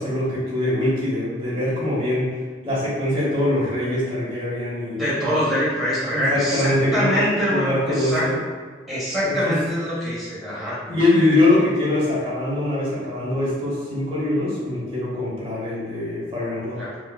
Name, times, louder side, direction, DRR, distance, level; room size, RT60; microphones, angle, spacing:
voice 1, 0.0-2.3 2.6-5.4 6.1-8.4 9.2-9.5 10.9-16.8, left 1 dB, 30° right, -9 dB, 1.3 m, -23 dB
voice 2, 5.0-8.3 8.9-10.8 16.7-16.9, equal, ahead, -11 dB, 1.5 m, -24 dB
4.7 x 2.3 x 2.2 m, 1.5 s
head